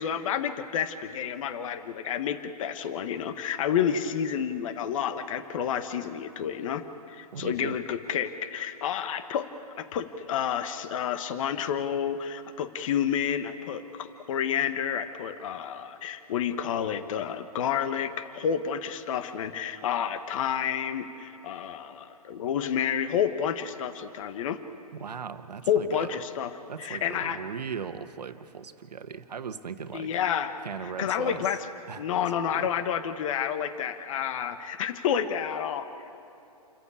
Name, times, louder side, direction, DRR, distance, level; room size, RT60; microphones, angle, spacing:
voice 1, 0.0-6.8 7.1-9.5 9.8-24.6 25.7-26.5 26.8-27.4 29.9-30.5 31.0-31.7 32.0-36.1, left 8 dB, 55° left, 10 dB, 1.4 m, -30 dB
voice 2, 7.3-7.8 24.9-26.2 26.7-30.1 30.6-31.5 31.9-32.0 32.4-32.7, right 6 dB, 85° right, 10 dB, 1.3 m, -38 dB
28.5 x 14.0 x 8.5 m, 2.9 s
hypercardioid pair, 135°, 20 cm